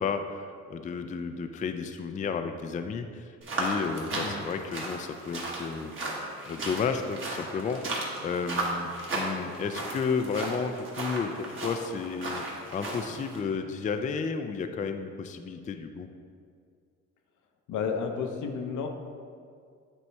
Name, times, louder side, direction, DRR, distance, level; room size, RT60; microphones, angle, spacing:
voice 1, 0.0-5.9 6.5-12.5 12.7-16.1, left 5 dB, 25° left, 7 dB, 0.3 m, -32 dB
sound 1, 3.4-13.4, right 2 dB, 40° right, 1.4 m, -35 dB
voice 2, 17.7-18.9, left 6 dB, 75° left, 4 dB, 0.7 m, -31 dB
8.2 x 3.1 x 4.5 m, 2.2 s
cardioid pair, 90°, 30 cm